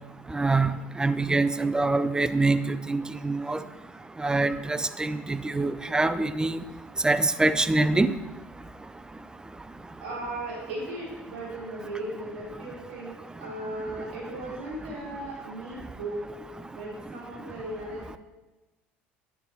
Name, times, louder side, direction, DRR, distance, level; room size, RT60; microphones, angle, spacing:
voice 1, 0.3-3.6 4.2-6.6 7.0-8.1, right 3 dB, 10° right, 12 dB, 0.4 m, -25 dB
voice 2, 10.0-13.1 13.4-16.3 16.7-18.0, right 1 dB, 75° right, -5 dB, 2.9 m, -36 dB
10.0 x 6.8 x 2.8 m, 1.1 s
hypercardioid pair, 65°, 6 cm